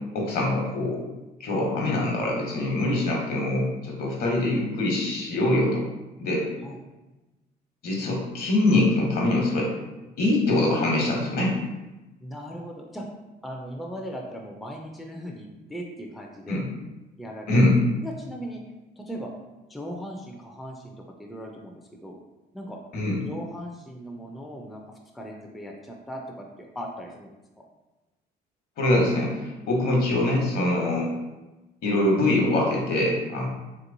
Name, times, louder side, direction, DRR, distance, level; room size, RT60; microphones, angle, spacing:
voice 1, 0.1-1.0 1.4-5.8 6.2-6.5 7.8-9.7 10.2-11.5 16.5-16.6 17.5-17.8 22.9-23.2 28.8-31.1 31.8-33.5, left 1 dB, 65° left, -1 dB, 1.0 m, -23 dB
voice 2, 12.2-13.0 13.4-16.6 17.2-17.6 18.0-18.6 19.0-19.3 19.7-22.2 22.5-22.8 23.2-24.8 25.1-27.3 27.6-27.7, equal, ahead, 0 dB, 0.3 m, -38 dB
3.2 x 2.9 x 2.6 m, 1.1 s
cardioid pair, 110°, 17 cm